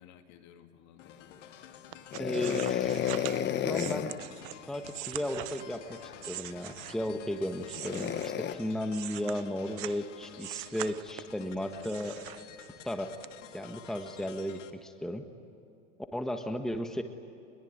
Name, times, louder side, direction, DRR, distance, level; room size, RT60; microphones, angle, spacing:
voice 1, 0.0-1.4 7.1-7.4 11.4-11.8, left 10 dB, 50° left, 6 dB, 2.6 m, -54 dB
sound 1, 1.0-14.7, left 10 dB, 80° left, 2.0 m, -52 dB
sound 2, 1.9-7.2 7.6-10.0 10.4-11.4 11.8-12.9 13.2-13.3, right 20 dB, 50° right, 0.8 m, -43 dB
sound 3, 2.1-4.2 6.0-6.2 7.7-8.5, left 10 dB, 30° left, 1.4 m, -31 dB
voice 2, 2.2-3.3 3.6-4.2 4.7-12.2 12.8-13.1 13.5-15.3 16.1-17.0, left 1 dB, ahead, 6 dB, 1.5 m, -35 dB
26.5 x 22.0 x 9.7 m, 2.6 s
hypercardioid pair, 110°, 36 cm